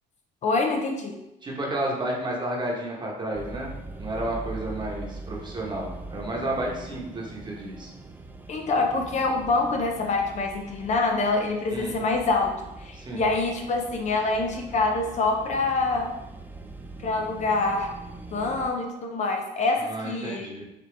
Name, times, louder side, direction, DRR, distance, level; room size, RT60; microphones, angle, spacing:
voice 1, 0.4-1.2 8.5-12.5 12.8-16.1 17.0-17.9 18.3-20.5, left 3 dB, 45° left, 2 dB, 0.6 m, -25 dB
voice 2, 1.4-3.7 4.0-7.9 11.7-11.9 12.9-13.3 19.9-20.6, right 1 dB, 25° right, -2 dB, 1.2 m, -31 dB
sound 1, 3.3-18.7, right 2 dB, 10° right, 0.4 m, -42 dB
5.1 x 2.8 x 3.4 m, 0.92 s
cardioid pair, 110°, 17 cm